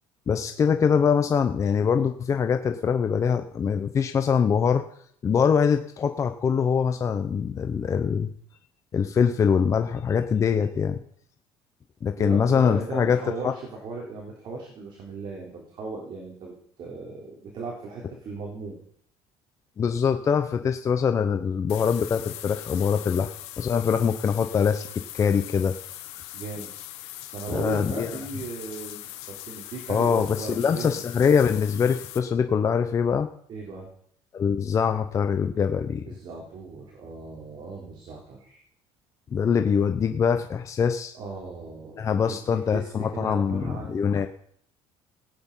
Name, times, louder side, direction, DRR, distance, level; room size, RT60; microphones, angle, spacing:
voice 1, 0.3-4.8 5.2-8.3 8.9-11.0 12.0-13.2 13.4-13.5 19.8-24.9 25.1-25.7 26.1-26.2 27.5-28.1 29.9-33.3 34.3-36.0 39.3-41.1 42.0-44.3, left 6 dB, 30° left, 7 dB, 0.8 m, -23 dB
voice 2, 12.2-18.8 26.3-26.7 27.3-31.0 33.5-33.9 36.1-38.6 41.1-42.4 42.7-44.3, right 4 dB, 45° right, -1 dB, 3.8 m, -37 dB
sound 1, 21.7-32.2, left 14 dB, 85° left, 1.5 m, -41 dB
17.5 x 9.6 x 5.6 m, 0.65 s
cardioid pair, 145°, 11 cm